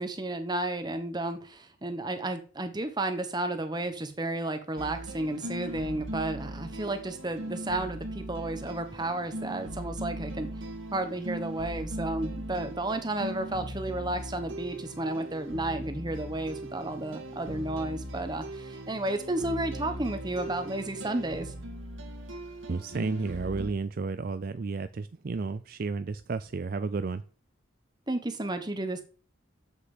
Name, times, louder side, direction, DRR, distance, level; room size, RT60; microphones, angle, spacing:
voice 1, 0.0-10.5 10.9-21.5 28.1-29.0, right 2 dB, 20° right, 1.1 m, -32 dB
sound 1, 4.8-23.7, right 1 dB, 80° right, 1.9 m, -39 dB
voice 2, 22.7-27.2, right 4 dB, 45° right, 0.4 m, -32 dB
7.5 x 6.7 x 7.3 m
head